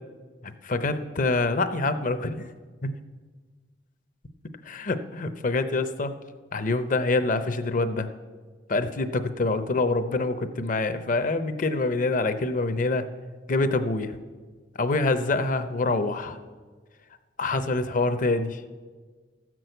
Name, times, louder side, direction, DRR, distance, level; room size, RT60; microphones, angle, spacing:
voice 1, 0.4-2.5 2.8-2.9 4.6-6.1 6.5-8.1 8.7-13.1 13.5-14.2 14.8-16.4 17.4-18.6, left 2 dB, 50° left, 11 dB, 0.7 m, -26 dB
13.5 x 6.2 x 7.9 m, 1.4 s
head